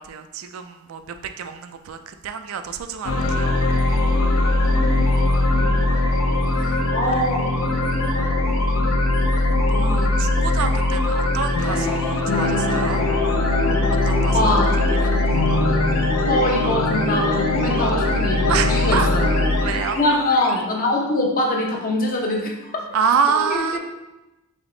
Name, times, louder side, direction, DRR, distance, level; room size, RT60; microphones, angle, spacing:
voice 1, 0.0-3.5 5.5-5.6 6.6-6.8 7.3-7.4 9.7-13.0 14.1-14.4 14.9-15.5 18.5-19.1 19.6-20.0 22.9-23.8, right 6 dB, 65° right, 8 dB, 0.3 m, -27 dB
sound 1, 3.0-20.6, left 2 dB, 75° left, 0.6 m, -20 dB
voice 2, 5.5-6.0 6.9-8.9 9.7-10.2 14.3-15.1 16.3-19.3 20.0-22.7 23.3-23.8, left 1 dB, 40° left, 0 dB, 0.7 m, -24 dB
3.5 x 3.5 x 3.7 m, 1.0 s
head